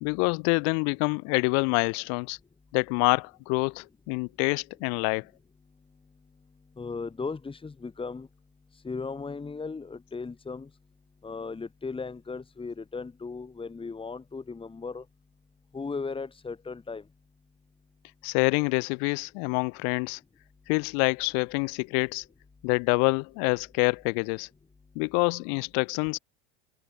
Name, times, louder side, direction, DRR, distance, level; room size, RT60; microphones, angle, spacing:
voice 1, 0.0-2.4 2.7-5.2 18.2-20.2 20.7-22.2 22.6-24.5 25.0-26.2, left 40 dB or more, 60° left, 0.5 m, -26 dB
voice 2, 6.8-8.3 8.8-10.7 11.2-15.0 15.7-17.0, left 4 dB, 15° left, 3.3 m, -36 dB
hypercardioid pair, 95°, 30 cm